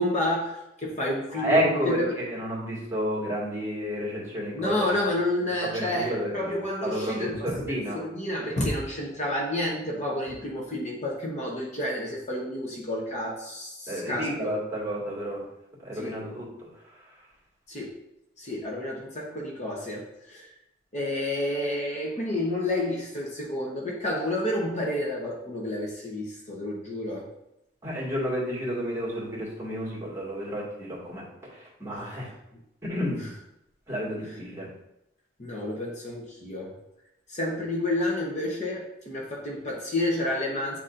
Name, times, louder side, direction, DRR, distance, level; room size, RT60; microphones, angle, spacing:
voice 1, 0.0-2.1 4.5-14.5 15.9-16.2 17.7-17.9 18.4-20.5 20.9-27.3 31.9-32.3 33.1-33.3 34.2-34.3 35.4-36.7 37.3-40.8, left 1 dB, 40° left, -2 dB, 1.0 m, -30 dB
voice 2, 1.3-4.7 5.6-6.5 6.8-8.0 13.9-15.4 15.8-16.5 27.8-32.3 32.8-33.2 33.9-34.7, equal, 15° right, -6 dB, 2.0 m, -30 dB
8.9 x 4.1 x 2.6 m, 0.87 s
head